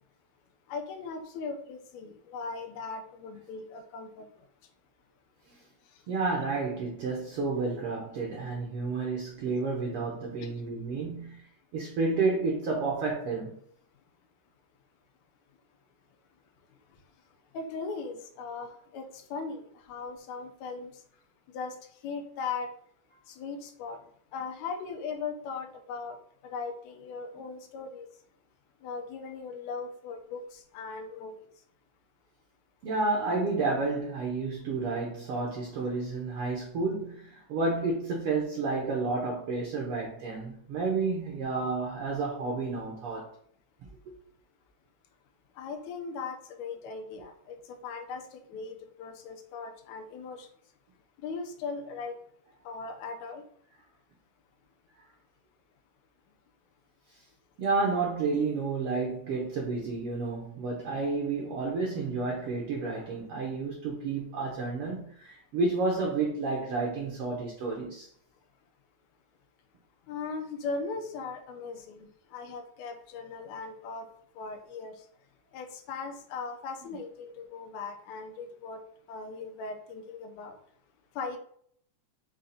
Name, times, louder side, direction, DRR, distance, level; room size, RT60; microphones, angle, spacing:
voice 1, 0.7-4.3 17.5-20.9 21.5-21.8 22.0-22.7 23.3-24.0 24.3-26.2 26.4-28.1 28.8-31.5 45.6-50.5 51.2-52.2 52.7-53.4 70.1-74.1 74.4-74.9 75.5-78.8 79.1-80.6 81.2-81.4, left 4 dB, 80° left, 1.8 m, -38 dB
voice 2, 6.1-11.5 11.7-13.5 32.8-43.3 57.6-68.1, right 3 dB, 70° right, 1.4 m, -30 dB
5.6 x 2.5 x 3.8 m
omnidirectional pair, 3.5 m